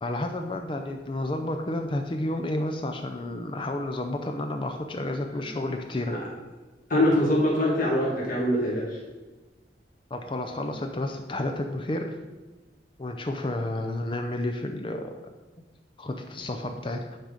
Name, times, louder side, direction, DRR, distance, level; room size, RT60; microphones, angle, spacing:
voice 1, 0.0-6.2 10.1-12.2 13.0-15.2 16.0-17.2, left 1 dB, 30° left, 5 dB, 0.5 m, -31 dB
voice 2, 6.9-8.8, left 1 dB, 50° left, -5 dB, 1.8 m, -23 dB
8.9 x 3.9 x 5.0 m, 1.2 s
head